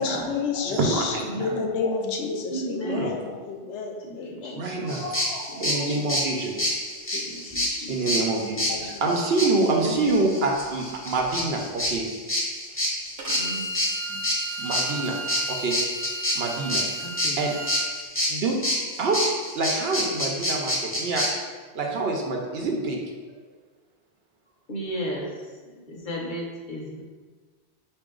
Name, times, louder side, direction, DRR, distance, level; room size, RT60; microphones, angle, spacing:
voice 1, 0.0-6.2 7.1-8.0 8.7-9.0, left 4 dB, 80° left, 2 dB, 0.9 m, -31 dB
voice 2, 0.7-1.5 2.0-2.1 2.8-3.1 4.5-6.6 7.9-12.1 14.1-14.2 14.6-15.2 15.5-15.8 16.3-16.8 17.4-17.5 18.3-18.6 19.0-19.3 19.5-21.3 21.7-23.0, right 3 dB, 65° right, 1 dB, 0.8 m, -26 dB
voice 3, 1.2-1.7 2.5-3.1 4.0-5.0 5.5-5.6 7.2-9.1 9.6-10.1 13.3-13.6 17.0-17.4 24.7-25.5 25.9-27.0, right 1 dB, 50° left, -3 dB, 0.9 m, -35 dB
sound 1, 4.9-21.3, left 1 dB, 15° left, 0.7 m, -28 dB
Bowed string instrument, 13.2-17.9, right 2 dB, 45° right, 0.5 m, -34 dB
4.9 x 2.6 x 3.7 m, 1.5 s
omnidirectional pair, 1.2 m